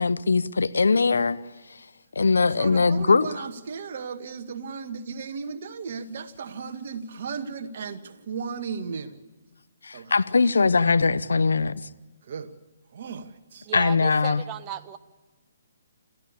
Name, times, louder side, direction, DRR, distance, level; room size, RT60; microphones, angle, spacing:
voice 1, 0.0-1.4 2.2-3.3 9.8-11.7 13.7-14.4, left 4 dB, 75° left, 0.9 m, -21 dB
voice 2, 2.5-9.2 9.9-10.4 12.2-12.5 12.9-13.7, right 5 dB, 55° right, 2.0 m, -35 dB
voice 3, 13.6-15.0, right 10 dB, 25° right, 1.4 m, -35 dB
27.0 x 15.0 x 8.5 m
figure-of-eight pair, 135°, 0 cm